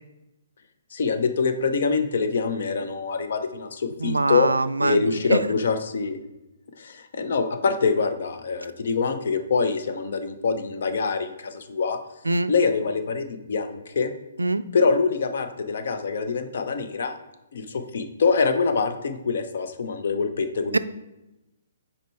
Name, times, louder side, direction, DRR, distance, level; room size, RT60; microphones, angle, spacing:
voice 1, 0.9-4.5 4.8-6.2 6.8-12.0 12.5-14.1 14.7-17.2 17.5-20.8, left 4 dB, 60° left, 7 dB, 0.7 m, -25 dB
voice 2, 4.0-5.4 12.3-12.5 14.4-14.6 20.7-20.8, right 2 dB, 80° right, 14 dB, 0.3 m, -23 dB
5.2 x 4.2 x 4.5 m, 0.95 s
figure-of-eight pair, 125°, 0 cm